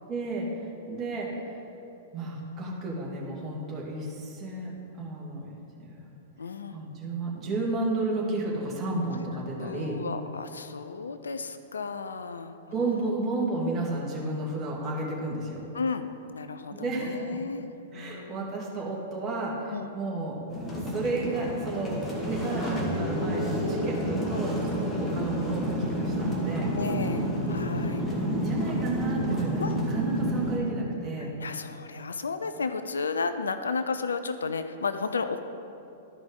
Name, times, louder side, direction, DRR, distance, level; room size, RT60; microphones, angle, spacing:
voice 1, 0.1-1.6 2.1-4.7 5.0-6.0 6.7-10.0 12.7-15.7 16.7-17.4 17.9-20.4 20.8-21.9 22.2-27.3 28.0-31.3, right 2 dB, 25° right, -3 dB, 2.0 m, -32 dB
voice 2, 6.4-6.9 9.6-13.1 15.7-16.1 16.3-18.5 19.7-19.9 24.3-24.4 26.8-28.0 29.6-29.8 31.2-35.4, left 4 dB, 80° left, 10 dB, 0.4 m, -33 dB
sound 1, 20.5-30.6, right 1 dB, 20° left, 1.7 m, -29 dB
13.0 x 5.1 x 3.8 m, 2.9 s
figure-of-eight pair, 105°, 0 cm